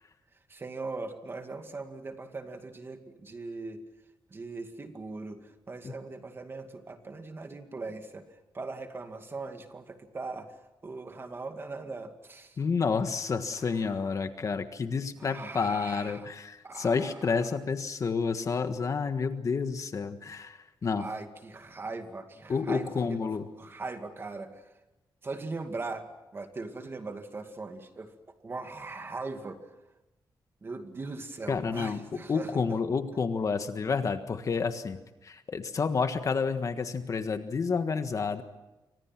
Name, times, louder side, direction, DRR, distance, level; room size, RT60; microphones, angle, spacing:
voice 1, 0.5-3.8 4.3-12.6 13.5-13.9 15.2-16.3 16.6-17.5 20.9-23.3 23.6-24.7 25.2-26.1 26.3-28.1 28.4-29.7 30.6-32.8, right 3 dB, 30° right, 6 dB, 2.3 m, -40 dB
voice 2, 12.6-21.1 22.5-23.5 31.5-32.0 32.3-35.0 35.2-38.4, left 5 dB, 45° left, 8 dB, 1.5 m, -30 dB
28.5 x 25.0 x 6.1 m, 1.0 s
wide cardioid pair, 155°, 8 cm